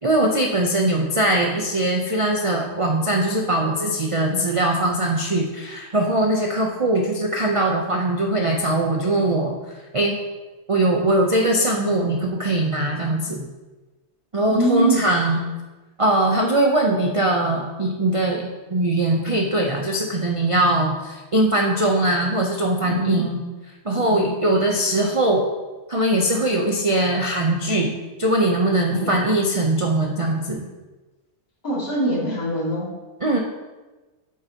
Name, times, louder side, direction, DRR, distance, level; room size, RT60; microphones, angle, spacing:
voice 1, 0.0-9.6 9.9-10.2 10.7-13.5 14.3-15.4 16.0-23.4 23.8-25.5 25.9-27.9 28.2-30.7 33.2-33.4, right 1 dB, 40° right, 0 dB, 0.4 m, -21 dB
voice 2, 14.5-15.0 22.9-23.2 23.9-24.3 28.9-29.1 31.6-32.9, right 1 dB, 60° left, -6 dB, 3.0 m, -23 dB
8.7 x 8.3 x 2.9 m, 1.2 s
omnidirectional pair, 1.7 m